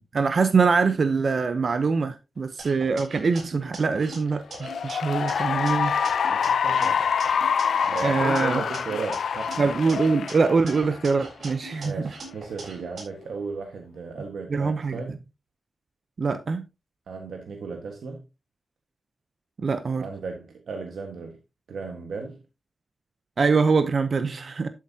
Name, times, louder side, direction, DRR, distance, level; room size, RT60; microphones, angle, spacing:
voice 1, 0.1-5.9 8.0-8.6 9.6-11.9 14.5-15.0 16.2-16.6 19.6-20.1 23.4-24.7, right 4 dB, 50° right, 0.7 m, -23 dB
sound 1, 2.6-4.9 5.3-7.6 8.0-10.3 10.7-13.0, right 3 dB, 65° right, 3.9 m, -41 dB
Cheering / Applause, 4.5-11.2, left 7 dB, 80° left, 0.6 m, -26 dB
voice 2, 6.3-7.2 7.8-9.6 11.8-15.1 17.1-18.2 20.0-21.4 21.7-22.4, right 4 dB, 85° right, 1.4 m, -35 dB
12.0 x 7.4 x 2.8 m
wide cardioid pair, 140°, 0 cm